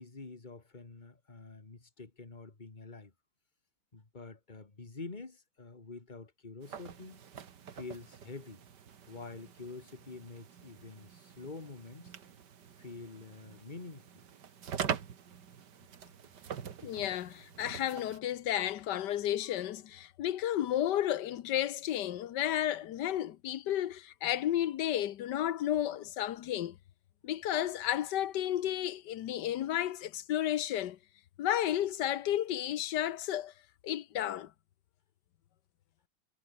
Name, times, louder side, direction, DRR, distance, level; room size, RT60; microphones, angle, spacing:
voice 1, 0.0-3.1 3.9-7.2 7.7-8.6 9.1-12.1 12.8-14.2, left 3 dB, 25° left, 2.4 m, -47 dB
sound 1, 6.6-18.2, right 8 dB, 85° right, 2.2 m, -44 dB
voice 2, 16.8-26.8 27.2-31.0 31.4-33.5 33.8-34.5, left 12 dB, 90° left, 1.5 m, -32 dB
omnidirectional pair, 1.8 m